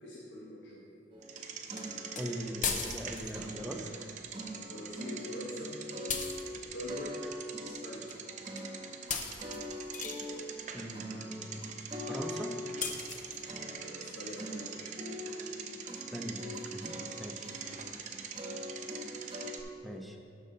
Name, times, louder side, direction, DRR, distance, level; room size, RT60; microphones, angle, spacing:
voice 1, 0.0-0.8 4.7-5.8 6.7-7.2 7.6-8.1 13.8-14.9, left 1 dB, 80° left, -7 dB, 1.3 m, -44 dB
sound 1, 1.1-4.1 4.3-6.6 6.9-19.5, left 1 dB, 25° right, 1.2 m, -43 dB
Bicycle, 1.2-19.6, right 6 dB, 45° right, 0.6 m, -45 dB
sound 2, 1.8-1.9 2.2-2.3 2.6-3.4 6.1-6.5 8.1-8.2 8.6-8.7 9.1-10.3 12.8-13.4, left 6 dB, 45° left, 0.7 m, -36 dB
voice 2, 2.2-3.8 10.7-11.7 12.1-12.5 15.9-17.5 19.8-20.3, equal, ahead, 2 dB, 0.7 m, -41 dB
12.0 x 6.6 x 4.0 m, 2.5 s
head